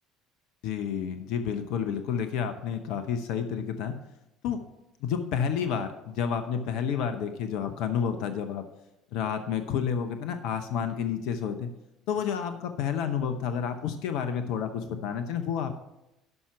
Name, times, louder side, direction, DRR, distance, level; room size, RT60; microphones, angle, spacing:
voice 1, 0.6-3.9 4.4-4.6 5.0-8.6 9.1-11.7 12.1-15.7, left 7 dB, 65° left, 9 dB, 0.8 m, -30 dB
11.0 x 5.8 x 5.7 m, 0.91 s
hypercardioid pair, 60°, 0 cm